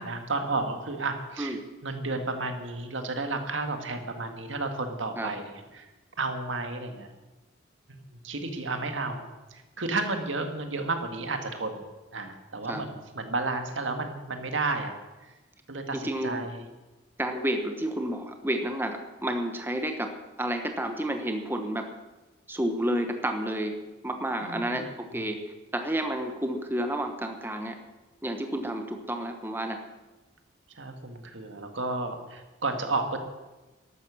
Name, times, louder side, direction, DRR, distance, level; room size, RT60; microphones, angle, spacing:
voice 1, 0.0-5.9 6.2-7.1 8.1-9.2 9.5-11.8 12.1-14.9 15.3-15.4 15.7-16.6 24.4-24.8 30.8-33.2, right 3 dB, 85° right, 6 dB, 1.9 m, -32 dB
voice 2, 16.0-16.4 17.2-21.9 22.5-23.8 24.0-25.4 25.7-27.8 28.2-29.8, right 1 dB, 10° right, 5 dB, 1.2 m, -30 dB
14.0 x 12.0 x 6.3 m, 1.1 s
head